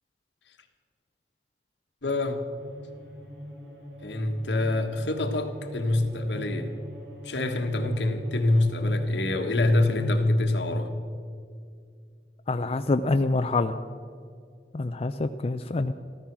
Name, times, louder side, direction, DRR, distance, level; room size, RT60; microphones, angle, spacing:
voice 1, 2.0-2.4 4.0-6.7 7.2-10.9, left 2 dB, 80° left, 5 dB, 1.4 m, -25 dB
sound 1, 2.6-10.7, equal, 65° right, 3.6 m, -42 dB
voice 2, 12.5-13.8 14.7-15.9, left 3 dB, 35° left, 8 dB, 0.4 m, -26 dB
14.5 x 13.5 x 6.1 m, 2.2 s
head